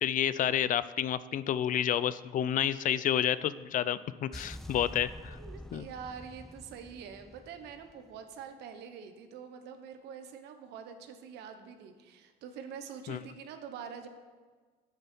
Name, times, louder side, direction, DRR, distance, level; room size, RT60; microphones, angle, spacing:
voice 1, 0.0-5.4 5.7-5.9 13.1-13.2, left 10 dB, 50° left, 16 dB, 0.5 m, -30 dB
sound 1, 4.3-8.4, equal, ahead, 0.6 m, -47 dB
voice 2, 5.4-14.1, right 7 dB, 85° right, 7 dB, 1.2 m, -45 dB
19.5 x 6.6 x 4.5 m, 1.5 s
cardioid pair, 110°, 17 cm